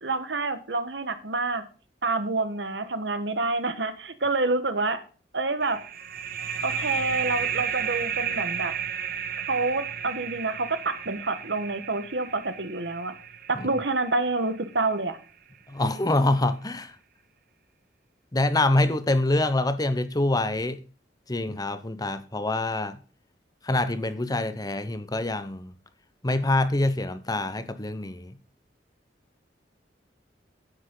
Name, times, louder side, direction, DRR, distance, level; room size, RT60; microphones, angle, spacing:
voice 1, 0.0-1.6 2.0-5.0 5.3-5.8 6.6-8.7 9.5-13.1 13.5-15.2, right 3 dB, 75° right, 1.4 m, -28 dB
sound 1, 5.6-14.9, right 7 dB, 55° right, 1.1 m, -33 dB
voice 2, 15.7-17.0 18.3-20.8 21.3-23.0 23.6-25.7 26.2-28.4, left 2 dB, 20° left, 0.9 m, -25 dB
9.8 x 8.9 x 3.9 m
head